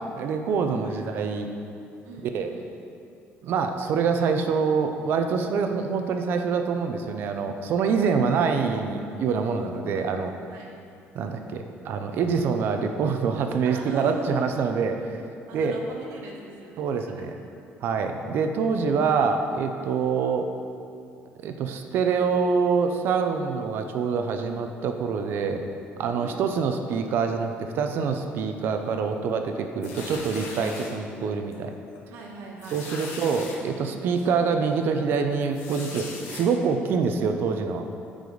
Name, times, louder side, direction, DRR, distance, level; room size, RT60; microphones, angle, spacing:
voice 1, 0.2-1.5 2.2-2.5 3.4-10.3 11.1-15.2 15.5-15.8 16.8-17.3 17.8-20.5 21.4-25.6 26.0-31.7 32.7-37.8, right 5 dB, 55° right, 6 dB, 0.6 m, -25 dB
voice 2, 2.0-2.7 10.4-10.7 13.6-14.4 15.5-17.2 26.1-26.4 30.4-30.8 32.1-33.1, right 3 dB, 90° right, -1 dB, 1.6 m, -40 dB
sound 1, 29.8-30.9 31.5-31.7 32.0-32.1 32.6-33.6 34.2-34.3 35.5-36.4, left 3 dB, 85° left, 1.5 m, -39 dB
14.5 x 5.0 x 4.0 m, 2.6 s
cardioid pair, 175°, 4 cm